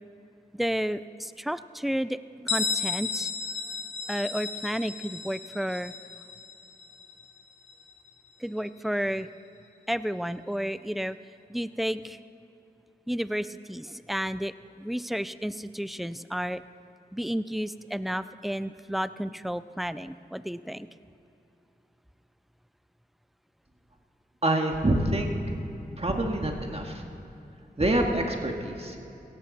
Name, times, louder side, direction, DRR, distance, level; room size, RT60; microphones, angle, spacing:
voice 1, 0.5-3.3 4.1-5.9 8.4-9.3 9.9-11.2 11.5-12.2 13.1-14.5 14.8-16.6 17.1-20.9, equal, ahead, 14 dB, 0.5 m, -31 dB
Bell, 2.5-8.0, left 5 dB, 80° left, 1.1 m, -34 dB
voice 2, 24.4-25.3 26.0-27.0 27.8-29.0, right 1 dB, 35° right, 2 dB, 2.0 m, -26 dB
17.0 x 14.5 x 4.3 m, 2.9 s
cardioid pair, 40°, 18 cm